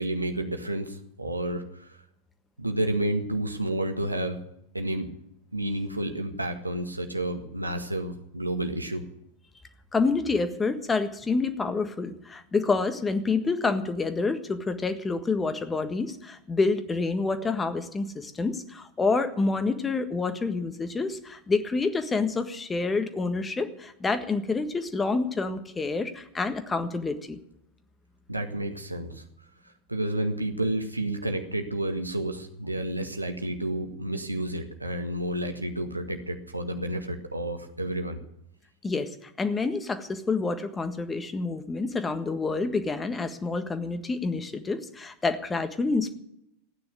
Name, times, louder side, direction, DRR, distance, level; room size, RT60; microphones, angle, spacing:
voice 1, 0.0-1.9 2.6-4.4 4.7-5.1 5.5-9.0 28.3-29.2 29.9-38.2, right 1 dB, 85° right, 6 dB, 1.7 m, -30 dB
voice 2, 9.9-27.4 38.8-46.1, left 3 dB, 15° left, 9 dB, 1.6 m, -28 dB
15.5 x 9.7 x 9.5 m, 0.76 s
figure-of-eight pair, 90°, 0 cm